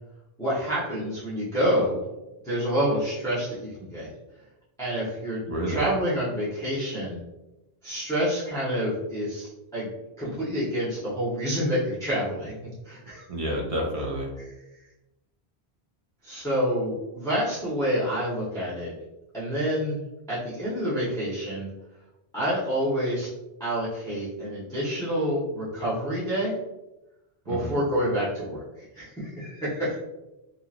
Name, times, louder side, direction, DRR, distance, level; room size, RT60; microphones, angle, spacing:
voice 1, 0.4-2.0 2.4-4.1 4.8-5.4 5.7-7.2 7.8-9.9 10.2-13.3 16.2-18.9 19.3-20.0 20.3-21.7 22.3-23.3 23.6-26.5 27.5-30.0, equal, 5° left, -11 dB, 0.8 m, -28 dB
voice 2, 5.5-5.9 13.3-14.4 27.5-27.8, right 1 dB, 50° right, -1 dB, 0.4 m, -29 dB
2.8 x 2.7 x 2.4 m, 0.98 s
omnidirectional pair, 1.1 m